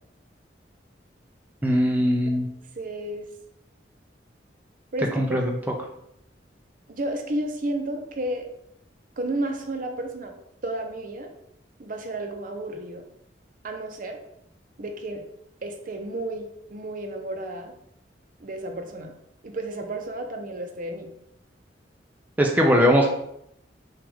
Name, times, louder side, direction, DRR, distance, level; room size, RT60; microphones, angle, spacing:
voice 1, 1.6-2.5 5.2-5.5 22.4-23.1, equal, 10° right, 0 dB, 0.5 m, -20 dB
voice 2, 2.8-3.2 4.9-5.4 5.6-5.8 6.9-8.5 9.2-10.3 10.6-11.3 11.8-13.0 13.6-14.2 14.8-15.2 15.6-16.5 16.7-17.7 18.4-19.1 19.4-21.1, right 1 dB, 50° right, 4 dB, 0.7 m, -32 dB
5.9 x 2.4 x 3.5 m, 0.76 s
head